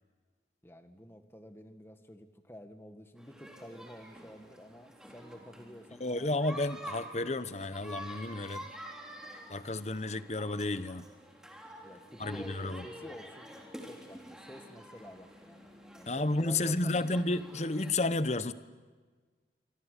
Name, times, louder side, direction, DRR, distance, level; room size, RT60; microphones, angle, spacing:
voice 1, 0.6-6.4 11.8-13.6 13.9-15.7 15.9-17.2, equal, 15° left, 7 dB, 1.8 m, -50 dB
sound 1, 3.2-17.9, equal, 5° right, 3.5 m, -48 dB
voice 2, 6.0-8.6 9.5-11.1 12.2-12.8 16.1-18.5, left 2 dB, 35° left, 14 dB, 0.9 m, -32 dB
26.5 x 25.0 x 8.2 m, 1.4 s
head